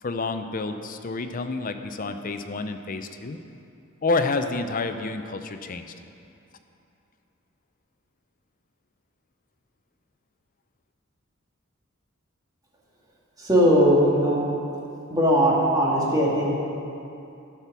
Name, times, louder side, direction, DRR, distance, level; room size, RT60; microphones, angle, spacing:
voice 1, 0.0-3.4 4.0-5.9, left 3 dB, 40° left, 8 dB, 0.5 m, -29 dB
voice 2, 13.4-14.4 15.1-16.6, equal, 20° right, -5 dB, 1.7 m, -19 dB
11.5 x 5.9 x 6.0 m, 2.7 s
head